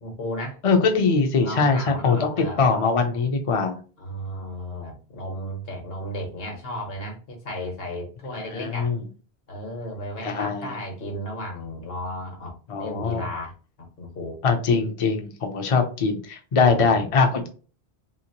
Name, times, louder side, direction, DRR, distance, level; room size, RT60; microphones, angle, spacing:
voice 1, 0.0-0.6 1.4-2.7 4.0-8.9 9.5-12.5 12.8-13.5 13.8-14.3 16.6-17.2, left 1 dB, 70° left, 2 dB, 1.3 m, -34 dB
voice 2, 0.6-3.8 8.5-9.0 10.2-10.7 12.7-13.2 14.4-17.5, left 4 dB, 45° left, 5 dB, 0.5 m, -22 dB
2.9 x 2.8 x 2.8 m, 0.37 s
omnidirectional pair, 1.1 m